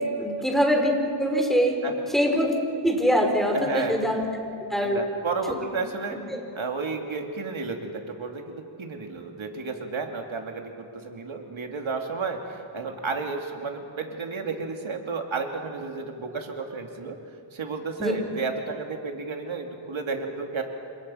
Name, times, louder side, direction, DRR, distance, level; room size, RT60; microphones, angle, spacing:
voice 1, 0.0-1.8 2.1-2.5 2.8-4.2 4.7-5.0 6.3-6.4 18.0-18.1, equal, ahead, 1 dB, 5.3 m, -23 dB
voice 2, 3.5-4.0 4.8-6.2 6.5-17.2 17.5-20.6, right 4 dB, 80° right, 3 dB, 2.9 m, -32 dB
29.5 x 27.0 x 5.8 m, 2.6 s
wide cardioid pair, 85°, 46 cm